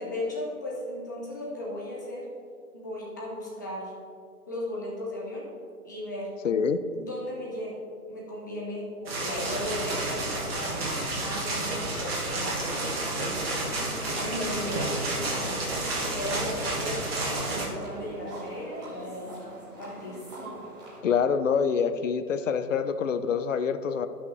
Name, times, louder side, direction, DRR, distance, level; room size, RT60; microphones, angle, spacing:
voice 1, 0.0-2.3 2.7-3.9 4.5-5.5 5.8-6.4 6.9-12.7 13.1-13.8 14.1-15.6 16.1-17.1 17.4-19.3 19.8-20.2, left 1 dB, 15° left, -4 dB, 0.6 m, -36 dB
voice 2, 6.4-6.8 21.0-24.1, left 6 dB, 55° left, 11 dB, 0.6 m, -26 dB
sound 1, 9.1-17.7, right 2 dB, 40° right, 1.8 m, -30 dB
sound 2, 13.7-21.0, right 1 dB, 10° right, 1.1 m, -43 dB
12.0 x 5.7 x 3.2 m, 2.4 s
figure-of-eight pair, 140°, 46 cm